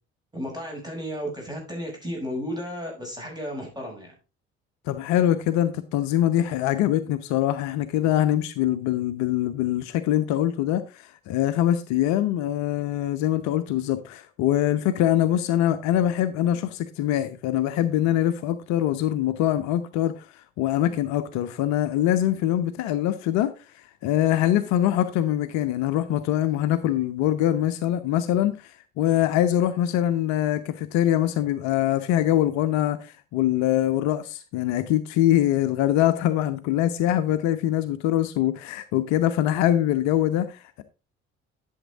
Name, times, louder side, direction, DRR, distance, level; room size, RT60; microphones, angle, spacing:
voice 1, 0.3-4.1, equal, 10° right, 6.6 m, -33 dB
voice 2, 4.9-20.3 20.6-23.5 24.0-40.8, left 12 dB, 55° left, 0.7 m, -23 dB
11.0 x 7.3 x 3.5 m
figure-of-eight pair, 50°, 33 cm